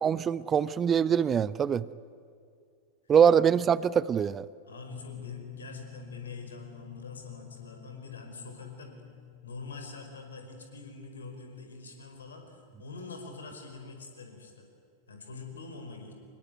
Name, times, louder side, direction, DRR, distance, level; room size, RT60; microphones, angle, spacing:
voice 1, 0.0-1.8 3.1-4.4, right 7 dB, 25° right, 19 dB, 0.5 m, -23 dB
voice 2, 4.6-9.0 9.4-14.7 15.1-16.1, left 3 dB, 70° left, 4 dB, 5.0 m, -45 dB
sound 1, 4.9-14.5, left 10 dB, 5° left, 1.2 m, -50 dB
26.0 x 21.0 x 9.4 m, 2.4 s
figure-of-eight pair, 90°, 0 cm